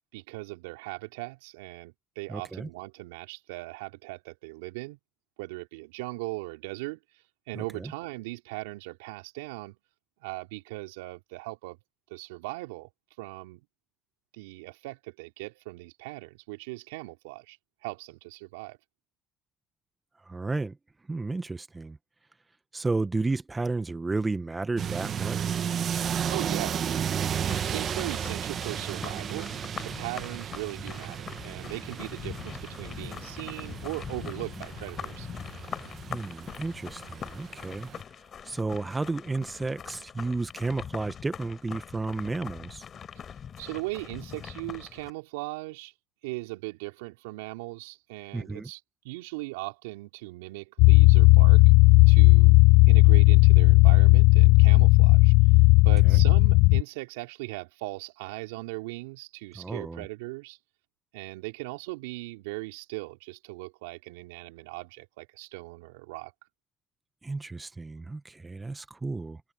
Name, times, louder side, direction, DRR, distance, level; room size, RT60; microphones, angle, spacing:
voice 1, 0.1-5.0 5.4-7.0 7.5-9.8 10.2-11.8 12.1-12.9 13.2-13.6 14.3-17.6 17.8-18.8 25.9-26.8 27.6-29.5 29.8-35.3 43.6-45.9 46.2-51.6 52.1-52.6 52.9-55.3 55.8-60.6 61.1-66.3, right 23 dB, 80° right, 3.4 m, -39 dB
voice 2, 2.3-2.7 7.5-7.9 20.3-20.8 21.1-22.0 22.7-25.6 36.1-37.9 38.4-42.9 48.3-48.7 56.0-56.2 59.5-60.0 67.2-69.4, right 3 dB, 20° right, 1.6 m, -32 dB
sound 1, 24.8-38.0, right 8 dB, 50° right, 1.4 m, -34 dB
sound 2, 27.5-45.1, left 7 dB, 45° left, 5.5 m, -42 dB
sound 3, 50.8-56.8, left 26 dB, 75° left, 0.4 m, -16 dB
hypercardioid pair, 60°, 0 cm